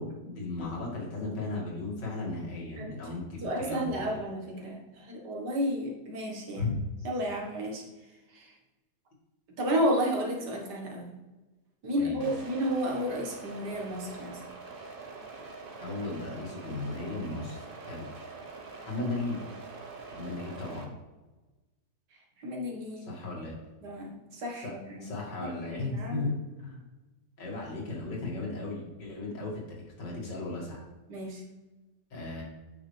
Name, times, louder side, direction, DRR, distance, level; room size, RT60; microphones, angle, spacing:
voice 1, 0.0-4.1 6.6-6.7 7.0-7.1 11.9-12.3 15.8-18.1 18.8-19.4 20.1-20.9 23.1-23.6 24.6-24.7 25.0-26.3 26.6-26.8 27.4-30.8 32.1-32.4, left 2 dB, 80° left, -2 dB, 2.7 m, -36 dB
voice 2, 3.4-6.7 7.0-7.8 8.3-8.5 9.6-11.1 11.8-14.4 22.4-23.1 23.8-25.1 25.7-26.3 31.1-31.4, equal, 75° right, 0 dB, 2.1 m, -32 dB
sound 1, 12.2-20.8, right 4 dB, 35° right, 1.0 m, -44 dB
9.0 x 5.8 x 3.3 m, 1.2 s
omnidirectional pair, 1.9 m